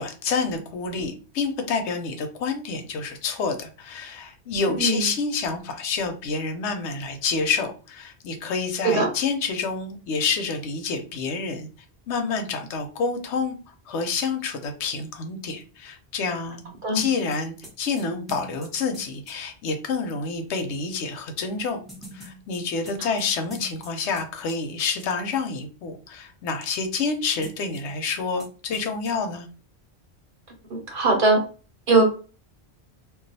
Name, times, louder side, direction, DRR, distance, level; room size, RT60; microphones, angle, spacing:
voice 1, 0.0-11.7 12.1-13.6 13.9-21.8 22.1-29.5, left 4 dB, 85° left, 6 dB, 0.9 m, -28 dB
sound 1, 17.0-19.4 21.9-24.2 24.5-24.6 27.4-28.1 28.4-28.5 28.7-29.1, equal, ahead, 0.9 m, -43 dB
voice 2, 30.7-31.4 31.9-32.0, right 3 dB, 55° right, 1 dB, 1.0 m, -20 dB
2.3 x 2.3 x 3.9 m, 0.37 s
omnidirectional pair, 1.1 m